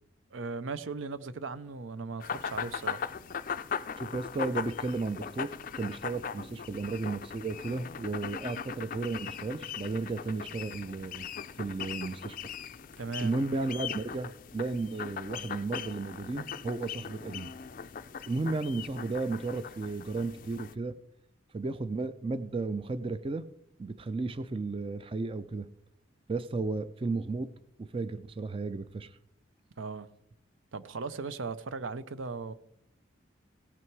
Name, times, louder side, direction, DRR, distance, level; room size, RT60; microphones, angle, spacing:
voice 1, 0.3-3.1 13.0-13.3 29.8-30.1 30.7-32.5, right 4 dB, 80° right, 0.6 m, -37 dB
sound 1, 2.2-20.8, left 7 dB, 45° left, 0.4 m, -39 dB
voice 2, 4.0-11.3 11.6-12.4 13.2-17.5 18.3-21.0 21.5-23.5 23.8-25.7 26.3-27.5 27.8-29.2, right 3 dB, 25° right, 0.4 m, -34 dB
17.0 x 6.0 x 4.6 m
head